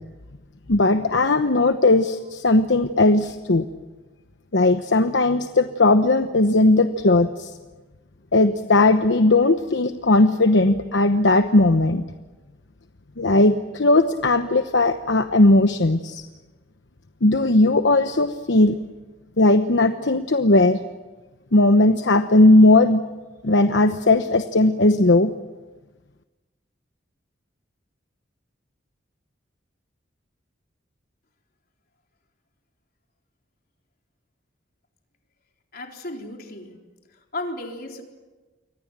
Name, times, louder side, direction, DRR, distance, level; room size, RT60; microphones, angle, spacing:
voice 1, 0.7-3.7 4.5-7.5 8.3-12.0 13.2-16.2 17.2-18.8 19.4-20.8 21.5-23.0 23.4-25.3, left 2 dB, 70° left, 8 dB, 1.0 m, -17 dB
voice 2, 35.7-36.8 37.3-38.0, left 2 dB, 50° left, 2 dB, 4.1 m, -34 dB
28.5 x 24.5 x 7.5 m, 1.2 s
head